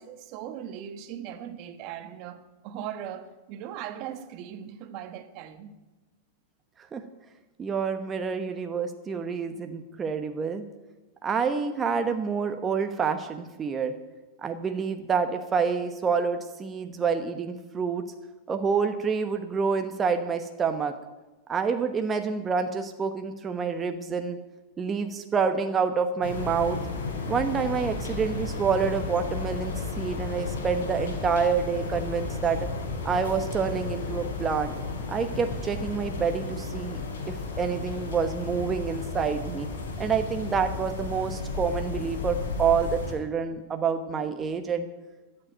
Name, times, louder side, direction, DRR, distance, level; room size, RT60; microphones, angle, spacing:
voice 1, 0.0-5.7, right 10 dB, 50° right, 1.3 m, -39 dB
voice 2, 7.6-10.6 11.2-13.9 14.4-18.0 18.5-21.0 21.5-24.4 24.8-26.8 27.3-32.7 33.0-34.7 35.1-37.0 37.3-39.7 40.0-44.9, right 6 dB, 25° right, 1.0 m, -27 dB
sound 1, 26.2-43.1, left 3 dB, 80° left, 3.9 m, -33 dB
13.0 x 7.7 x 9.2 m
hypercardioid pair, 115°, 0 cm